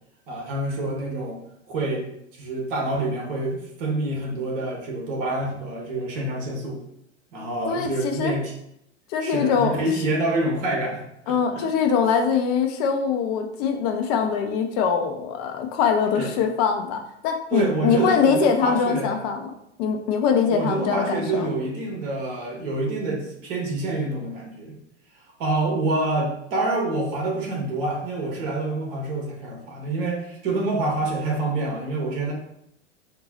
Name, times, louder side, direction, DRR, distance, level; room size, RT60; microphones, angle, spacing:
voice 1, 0.3-1.4 1.7-2.1 2.3-6.8 7.3-8.5 9.2-11.4 16.2-16.3 17.5-19.2 20.5-24.7 25.4-32.3, right 2 dB, 50° right, -1 dB, 1.1 m, -27 dB
voice 2, 7.7-8.3 9.1-9.8 11.3-19.5 19.8-21.5, left 6 dB, 35° left, 4 dB, 0.5 m, -23 dB
3.9 x 2.2 x 2.7 m, 0.77 s
figure-of-eight pair, 90°, 36 cm